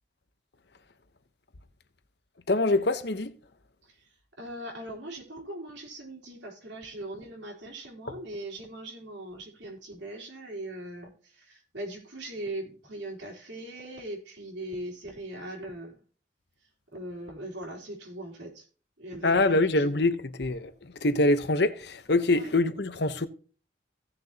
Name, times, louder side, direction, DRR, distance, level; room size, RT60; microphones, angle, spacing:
voice 1, 2.5-3.3 19.2-20.7 21.0-23.3, left 2 dB, 60° left, 1.0 m, -24 dB
voice 2, 3.8-16.0 16.6-18.7 19.0-19.9 22.3-22.5, right 1 dB, 75° right, 3.5 m, -40 dB
17.0 x 6.7 x 2.9 m
head